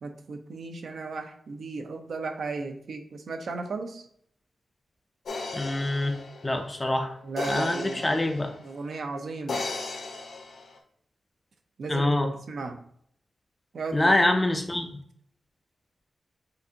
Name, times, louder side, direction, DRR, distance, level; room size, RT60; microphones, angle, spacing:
voice 1, 0.0-4.1 7.2-8.2 8.6-9.6 11.8-12.8 13.7-14.2, right 3 dB, 60° right, 5 dB, 0.6 m, -35 dB
sound 1, 5.3-8.8 9.5-10.8, left 3 dB, 70° left, 0.8 m, -36 dB
voice 2, 5.5-6.1 6.4-7.1 7.5-8.5 11.9-12.3 13.9-14.9, left 1 dB, 15° left, 5 dB, 0.4 m, -25 dB
6.6 x 2.6 x 2.8 m, 0.66 s
wide cardioid pair, 175°, 0 cm